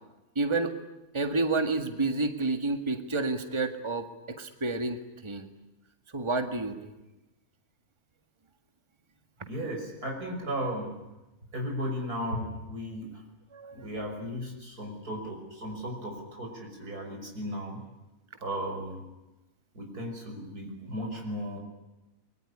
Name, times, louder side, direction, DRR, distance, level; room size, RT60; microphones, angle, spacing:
voice 1, 0.4-0.7 1.1-5.5 6.1-6.9 13.5-13.9, right 3 dB, 20° right, 7 dB, 1.8 m, -30 dB
voice 2, 9.4-11.0 11.5-13.2 13.7-17.9 18.4-19.1 19.7-21.6, equal, 85° right, 2 dB, 6.4 m, -35 dB
24.0 x 22.5 x 10.0 m, 1.0 s
omnidirectional pair, 1.6 m